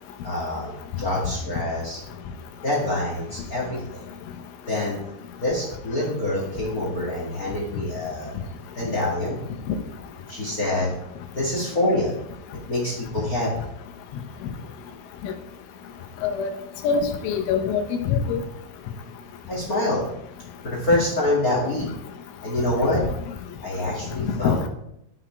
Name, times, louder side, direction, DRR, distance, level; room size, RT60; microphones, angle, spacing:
voice 1, 0.2-0.7 1.0-2.0 2.6-4.0 4.7-8.3 8.7-9.4 10.3-10.9 11.3-12.1 12.7-13.5 19.5-20.0 20.6-21.9 22.4-23.0 23.6-24.7, left 1 dB, 60° left, -3 dB, 0.9 m, -26 dB
voice 2, 16.2-16.5 16.8-18.4 24.4-24.6, left 6 dB, 85° left, 5 dB, 3.6 m, -23 dB
12.5 x 6.0 x 4.5 m, 0.79 s
omnidirectional pair, 5.5 m